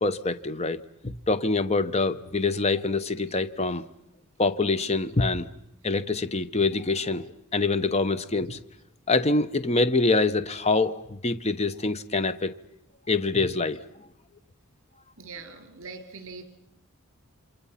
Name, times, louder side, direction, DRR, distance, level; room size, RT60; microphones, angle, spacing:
voice 1, 0.0-3.8 4.4-5.5 5.8-8.6 9.1-12.5 13.1-13.8, left 3 dB, 30° left, 12 dB, 0.9 m, -25 dB
voice 2, 15.2-16.4, right 4 dB, 60° right, 7 dB, 2.9 m, -42 dB
28.5 x 26.0 x 5.7 m, 0.79 s
head